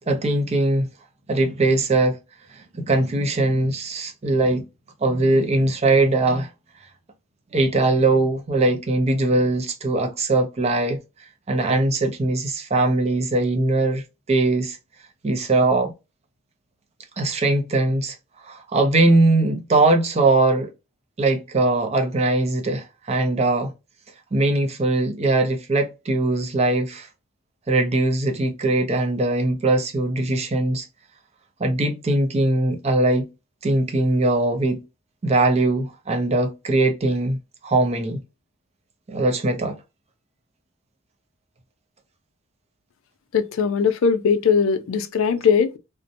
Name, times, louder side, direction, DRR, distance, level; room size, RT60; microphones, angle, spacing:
voice 1, 0.1-0.9 1.3-2.2 2.5-4.7 5.0-6.5 7.5-11.0 11.5-14.8 15.2-15.9 17.2-18.2 18.4-20.7 21.2-23.7 24.3-27.1 27.7-30.9 31.6-33.3 33.6-34.8 35.2-37.4 37.6-38.2 39.1-39.8, right 2 dB, 30° right, 0.5 m, -21 dB
voice 2, 43.3-45.8, left 6 dB, 70° left, 0.4 m, -20 dB
2.7 x 2.1 x 2.5 m
head